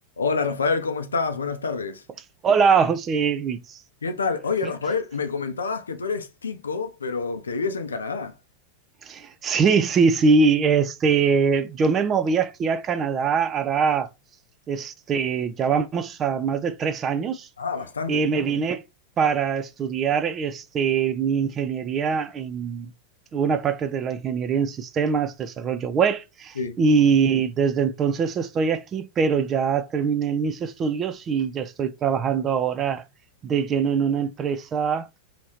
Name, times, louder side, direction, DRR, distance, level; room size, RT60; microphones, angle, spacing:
voice 1, 0.2-2.0 4.0-8.3 17.6-18.2 26.6-26.8, left 4 dB, 70° left, 0.5 m, -27 dB
voice 2, 2.4-3.8 9.0-14.1 14.7-17.5 18.1-18.8 19.2-22.9 23.3-33.0 33.4-35.1, right 5 dB, 25° right, 0.4 m, -23 dB
2.8 x 2.7 x 3.1 m
figure-of-eight pair, 90°, 0 cm